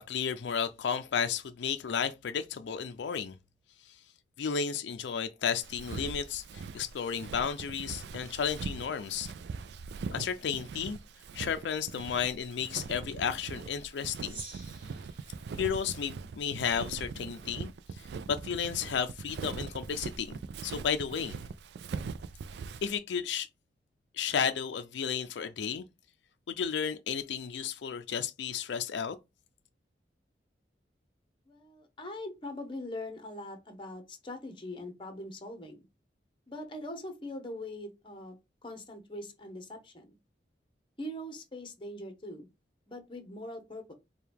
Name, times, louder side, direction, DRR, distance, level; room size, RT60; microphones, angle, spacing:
voice 1, 0.0-3.4 3.9-4.0 4.4-9.3 10.1-11.0 11.3-14.4 15.6-20.4 20.6-21.3 22.8-23.5 24.1-25.9 26.5-29.2, left 7 dB, 90° left, 0.4 m, -33 dB
Walk footsteps, 5.6-23.0, right 5 dB, 70° right, 0.3 m, -42 dB
Gong, 14.3-16.9, right 3 dB, 30° right, 1.5 m, -50 dB
voice 2, 31.5-35.8 36.5-38.4 38.6-40.1 41.0-42.5 42.9-43.9, left 1 dB, 30° left, 0.9 m, -42 dB
4.6 x 2.3 x 3.4 m
head